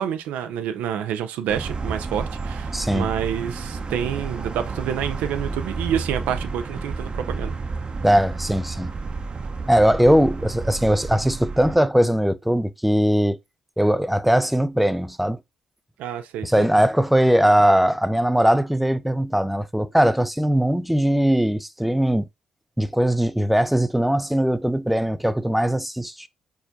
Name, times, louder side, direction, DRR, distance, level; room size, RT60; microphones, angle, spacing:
voice 1, 0.0-7.6 16.0-16.7, right 9 dB, 70° right, 0.4 m, -28 dB
sound 1, 1.5-11.8, right 4 dB, 40° right, 0.8 m, -31 dB
voice 2, 2.7-3.1 8.0-8.9 9.7-13.4 13.8-15.4 16.4-22.2 22.8-26.3, equal, 5° right, 0.5 m, -20 dB
4.6 x 4.3 x 2.6 m
hypercardioid pair, 45°, 3 cm